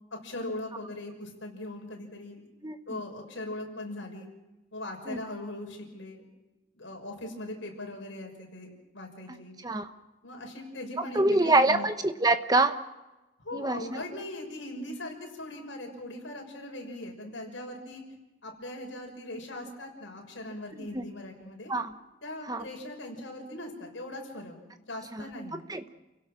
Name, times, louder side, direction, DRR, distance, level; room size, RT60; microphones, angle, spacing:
voice 1, 0.1-2.4 2.9-4.3 4.7-6.2 6.7-9.5 10.2-11.9 13.4-18.0 18.4-21.7 22.2-24.6 24.9-25.6, left 1 dB, 75° left, 2 dB, 6.0 m, -40 dB
voice 2, 2.6-3.0 5.1-5.2 9.6-9.9 11.0-12.8 13.5-14.0 20.8-21.0 21.7-21.9 22.5-22.7 25.1-25.2 25.5-25.9, right 2 dB, 20° right, 9 dB, 1.1 m, -26 dB
29.5 x 17.0 x 6.2 m, 1.1 s
head